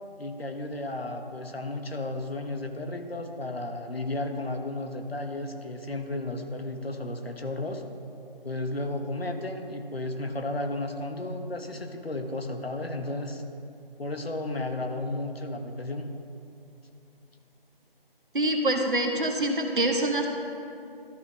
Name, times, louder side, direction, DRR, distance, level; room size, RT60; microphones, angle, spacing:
voice 1, 0.2-7.8 8.4-13.4 14.0-16.1, left 2 dB, 80° left, 5 dB, 1.0 m, -33 dB
voice 2, 18.3-20.3, right 1 dB, 60° right, 3 dB, 1.0 m, -25 dB
13.0 x 5.3 x 3.5 m, 2.6 s
figure-of-eight pair, 160°, 30 cm